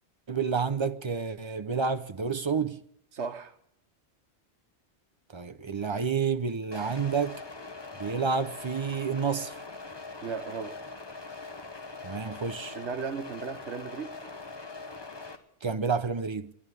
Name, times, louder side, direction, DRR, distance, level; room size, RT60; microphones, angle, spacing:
voice 1, 0.3-2.8 5.3-7.4 8.0-9.6 12.0-12.8 15.6-16.5, right 5 dB, 40° right, 0.4 m, -29 dB
voice 2, 3.1-3.6 10.2-10.8 12.7-14.2, right 6 dB, 70° right, 1.3 m, -36 dB
sound 1, 6.7-15.3, left 3 dB, 25° left, 1.0 m, -42 dB
11.0 x 11.0 x 9.8 m
omnidirectional pair, 1.2 m